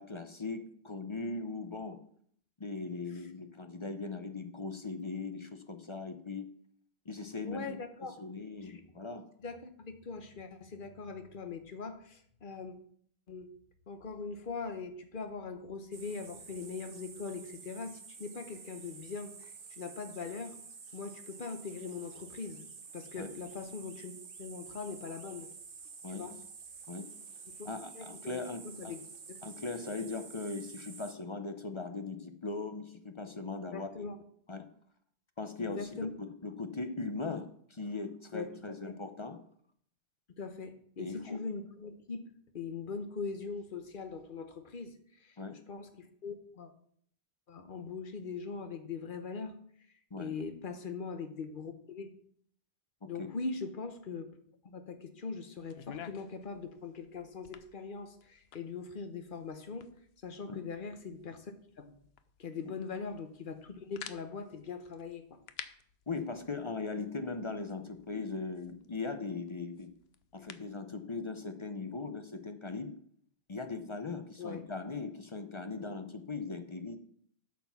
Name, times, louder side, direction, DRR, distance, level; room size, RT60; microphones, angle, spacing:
voice 1, 0.0-2.0 2.6-6.5 7.1-9.2 23.2-23.3 26.0-26.3 26.9-27.1 27.7-29.0 29.4-34.1 34.5-34.6 35.4-39.4 41.0-41.4 45.4-45.6 50.1-50.3 53.2-53.3 60.5-60.6 66.1-69.9 70.3-72.9 73.5-77.0, left 3 dB, 30° left, 8 dB, 0.7 m, -39 dB
voice 2, 7.4-8.2 8.6-8.8 9.4-12.7 13.3-13.5 13.9-20.6 20.9-22.7 22.9-24.1 24.4-25.5 26.1-26.3 27.6-27.7 27.9-28.4 28.8-29.0 29.3-29.4 33.7-34.2 35.6-36.1 38.3-38.5 38.9-39.0 40.4-42.2 42.5-45.4 45.7-46.7 47.5-49.5 50.2-52.1 53.1-54.3 54.6-59.9 60.2-61.9 62.4-65.3 74.4-74.6, left 4 dB, 55° left, 8 dB, 1.1 m, -41 dB
sound 1, 15.9-31.1, right 5 dB, 55° right, 1.2 m, -50 dB
sound 2, 55.6-70.8, left 9 dB, 70° left, 0.9 m, -54 dB
8.4 x 6.0 x 6.0 m, 0.63 s
omnidirectional pair, 1.1 m